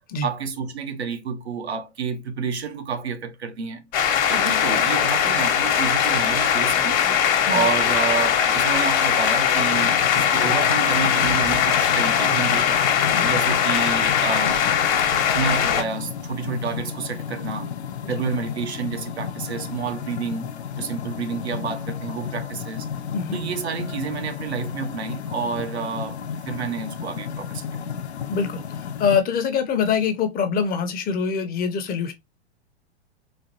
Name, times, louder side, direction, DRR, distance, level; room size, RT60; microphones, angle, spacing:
voice 1, 0.2-3.8 4.3-7.0 7.5-12.7 13.2-14.7 15.3-17.7 18.1-22.9 23.3-26.2 26.4-27.7, right 5 dB, 85° right, 0.7 m, -29 dB
sound 1, 3.9-15.8, left 8 dB, 45° left, 1.0 m, -20 dB
sound 2, 9.7-29.2, left 7 dB, 90° left, 0.5 m, -33 dB
voice 2, 28.3-32.1, left 6 dB, 30° left, 0.7 m, -24 dB
4.1 x 2.5 x 2.8 m
figure-of-eight pair, 95°, 32 cm